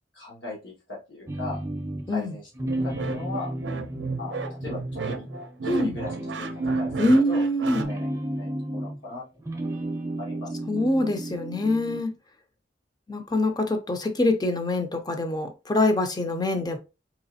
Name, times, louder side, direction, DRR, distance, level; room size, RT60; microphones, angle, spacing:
voice 1, 0.1-1.6 2.1-2.4 2.8-3.5 4.2-4.4 4.6-5.3 5.7-7.4 7.8-9.2 10.2-10.6, left 3 dB, 80° left, 1.6 m, -38 dB
sound 1, 1.3-2.2 2.5-5.6 5.9-9.1 9.4-12.1, right 1 dB, 15° right, 0.6 m, -34 dB
sound 2, 2.7-7.8, right 3 dB, 70° right, 0.5 m, -31 dB
voice 2, 7.0-7.9 10.7-12.1 13.1-16.8, left 1 dB, 20° left, 0.6 m, -24 dB
4.1 x 3.1 x 2.7 m
head